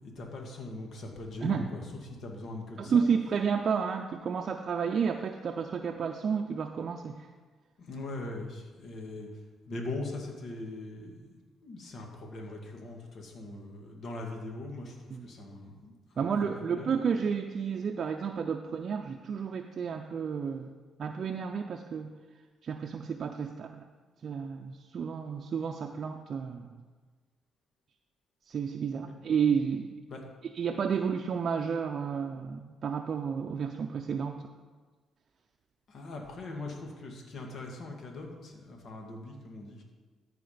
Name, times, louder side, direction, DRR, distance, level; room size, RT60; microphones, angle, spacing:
voice 1, 0.0-3.1 7.8-9.3 9.7-17.0 29.0-29.1 30.1-30.2 35.9-39.8, left 2 dB, 60° left, 1 dB, 2.0 m, -41 dB
voice 2, 2.8-7.3 15.1-15.3 16.2-20.7 21.0-22.1 22.6-23.8 24.2-26.7 28.5-29.9 30.6-34.4, right 6 dB, 55° right, 3 dB, 0.6 m, -31 dB
13.5 x 4.9 x 5.1 m, 1.4 s
cardioid pair, 90°, 0 cm